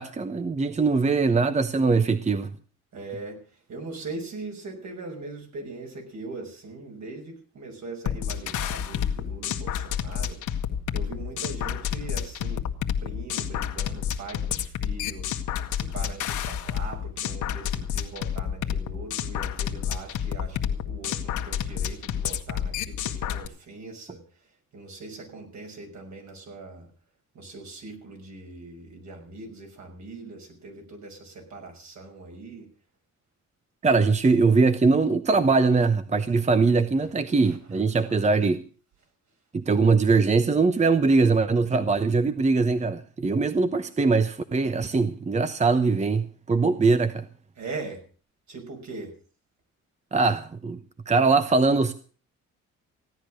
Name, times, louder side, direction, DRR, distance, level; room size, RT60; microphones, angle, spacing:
voice 1, 0.0-2.5 33.8-38.6 39.5-47.3 50.1-50.8 51.1-51.9, right 4 dB, 25° right, 0.9 m, -22 dB
voice 2, 2.9-10.4 10.9-12.6 13.0-15.3 15.7-24.2 24.7-26.9 27.3-32.7 37.5-37.8 38.1-38.2 47.6-48.0 48.5-49.1, right 3 dB, 65° right, 6.2 m, -41 dB
sound 1, 8.1-23.5, left 9 dB, 80° left, 1.6 m, -29 dB
16.0 x 10.0 x 6.4 m
cardioid pair, 90°, 30 cm